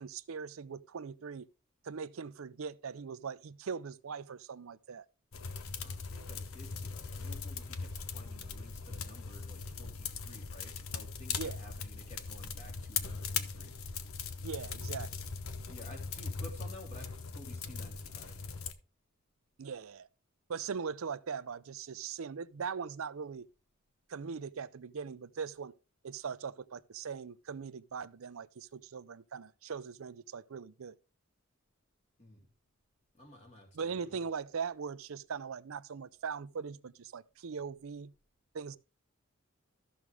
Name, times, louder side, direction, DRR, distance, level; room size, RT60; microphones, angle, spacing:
voice 1, 0.0-1.5 1.8-5.1 11.4-11.6 14.4-15.1 19.6-20.1 20.5-23.5 24.1-25.7 26.0-31.0 33.7-38.1 38.5-38.8, right 6 dB, 75° right, 0.5 m, -40 dB
sound 1, 5.3-18.7, left 5 dB, 80° left, 0.9 m, -40 dB
voice 2, 5.8-13.7 15.7-18.4 32.2-32.4 33.1-34.2, left 1 dB, 30° left, 3.1 m, -53 dB
14.0 x 6.2 x 3.4 m
head